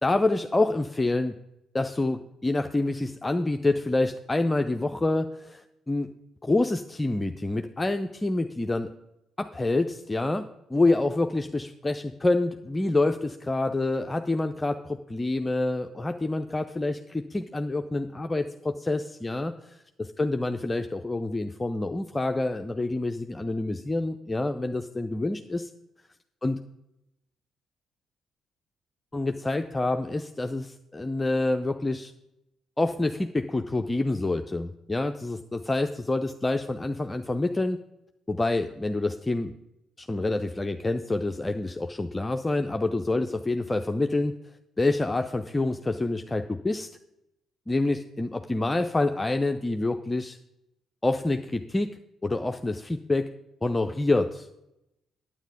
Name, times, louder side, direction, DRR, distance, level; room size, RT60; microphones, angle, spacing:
voice 1, 0.0-1.4 1.7-6.1 6.4-8.9 9.4-25.7 26.4-26.6 29.1-32.1 32.8-37.8 38.3-39.5 40.0-44.3 44.8-46.9 47.7-50.4 51.0-53.3 53.6-54.5, left 2 dB, 20° left, 7 dB, 0.5 m, -27 dB
9.3 x 8.8 x 5.1 m, 0.87 s
figure-of-eight pair, 40°, 0 cm